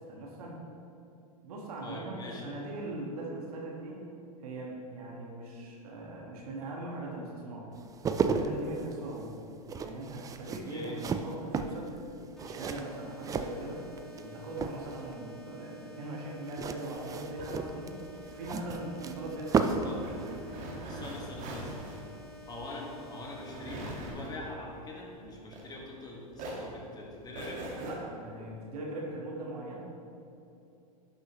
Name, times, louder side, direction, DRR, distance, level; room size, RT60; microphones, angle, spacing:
voice 1, 0.1-0.6 1.4-4.1 4.4-7.7 8.1-9.3 9.8-12.0 12.4-13.9 14.2-18.0 18.3-20.0 27.8-30.0, right 2 dB, 70° right, -3 dB, 1.7 m, -40 dB
voice 2, 1.8-2.5 10.6-11.0 19.6-20.1 20.8-21.9 22.4-27.7, left 2 dB, 20° left, -2 dB, 1.7 m, -43 dB
sound 1, 7.8-14.2 14.5-15.1 16.5-20.0 20.2-20.4, right 5 dB, 20° right, 0.4 m, -34 dB
sound 2, 12.4-24.1, left 1 dB, ahead, 1.1 m, -51 dB
sound 3, 17.0-26.0 26.3-27.9, right 2 dB, 40° right, 1.7 m, -43 dB
11.5 x 6.3 x 3.1 m, 2.7 s
hypercardioid pair, 110°, 20 cm